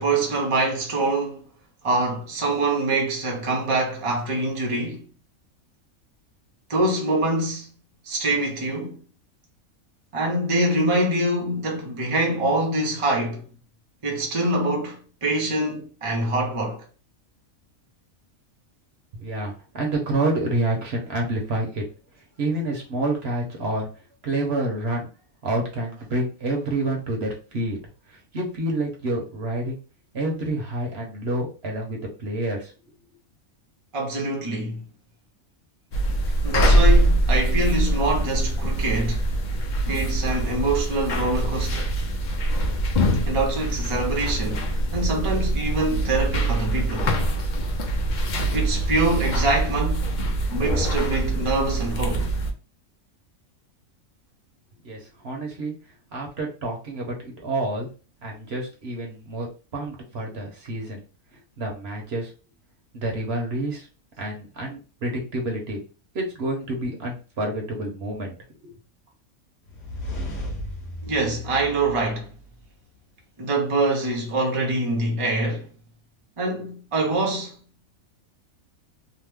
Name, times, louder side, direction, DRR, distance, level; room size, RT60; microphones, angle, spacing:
voice 1, 0.0-1.4 1.8-5.0 6.7-7.7 8.1-9.0 10.1-13.4 14.0-16.8 33.9-34.8 36.4-39.2 39.8-41.9 43.3-47.2 48.5-50.2 50.5-52.3 71.0-72.3 73.4-75.7 76.4-77.5, right 2 dB, 35° right, 0.6 m, -25 dB
voice 2, 19.1-21.8 22.4-23.9 24.2-25.1 25.4-27.8 28.1-29.8 30.1-32.7 54.8-55.7 56.1-57.9 58.2-59.5 59.7-61.0 61.6-62.3 62.9-63.9 64.2-65.8 66.1-68.4 68.6-68.7, right 2 dB, 55° right, 0.9 m, -28 dB
sound 1, 35.9-52.5, right 1 dB, 80° left, 0.4 m, -23 dB
sound 2, 69.7-72.6, left 1 dB, 55° left, 1.0 m, -35 dB
2.9 x 2.0 x 3.4 m
omnidirectional pair, 1.5 m